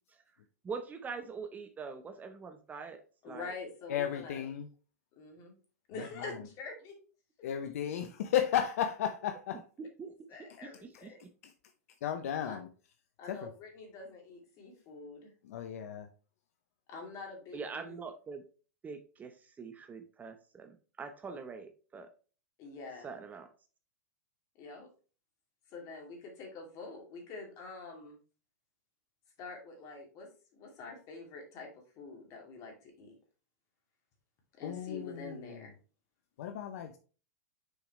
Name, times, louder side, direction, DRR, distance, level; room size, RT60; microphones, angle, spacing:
voice 1, 0.6-3.0 3.3-3.5 9.8-10.1 10.6-11.1 17.5-18.4 18.8-22.1 23.0-23.5, right 5 dB, 20° right, 0.8 m, -43 dB
voice 2, 3.2-4.5 5.2-5.5 5.9-7.0 10.3-11.2 12.5-12.6 13.2-15.3 16.9-18.0 21.3-21.4 22.6-23.1 24.6-24.9 25.7-28.2 29.4-30.3 30.6-33.2 34.6-35.7, left 3 dB, 40° left, 2.6 m, -46 dB
voice 3, 3.9-4.7 6.0-6.3 7.4-9.6 11.4-11.5 12.0-12.7 13.3-13.5 15.4-16.1 34.6-35.6 36.4-37.0, left 9 dB, 65° left, 0.7 m, -34 dB
6.4 x 4.9 x 3.1 m
hypercardioid pair, 110°, 9 cm